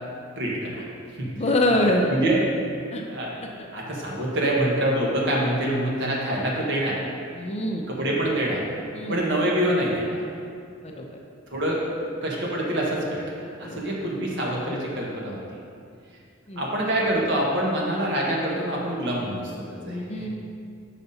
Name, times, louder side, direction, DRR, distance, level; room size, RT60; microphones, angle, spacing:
voice 1, 0.4-0.8 1.2-1.6 2.1-2.4 3.1-3.3 3.7-7.0 7.9-8.7 9.1-10.2 11.5-11.9 12.2-15.4 16.6-20.3, right 1 dB, 60° right, -3 dB, 1.3 m, -26 dB
voice 2, 1.3-2.1 2.9-3.0 7.4-7.8 8.9-9.2 10.8-11.0 13.7-13.8 16.5-16.6 19.8-20.3, left 1 dB, 30° left, 1 dB, 0.6 m, -24 dB
5.8 x 4.0 x 5.5 m, 2.4 s
head